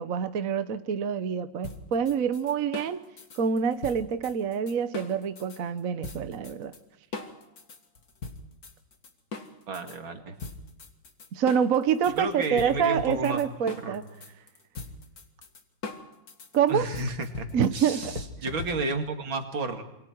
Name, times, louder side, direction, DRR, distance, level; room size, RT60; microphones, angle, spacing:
voice 1, 0.0-3.0 3.3-6.7 11.3-14.0 16.5-16.9 17.5-18.2, right 7 dB, 50° right, 10 dB, 1.2 m, -26 dB
sound 1, 1.6-5.6 6.0-6.8 7.1-10.0 10.4-19.1, left 3 dB, 50° left, 2.4 m, -40 dB
voice 2, 9.7-10.3 12.2-13.4 13.8-14.0 16.7-17.5 17.7-18.1 18.4-19.8, right 2 dB, 80° right, 5 dB, 3.2 m, -31 dB
27.5 x 24.0 x 4.6 m, 0.87 s
omnidirectional pair, 2.2 m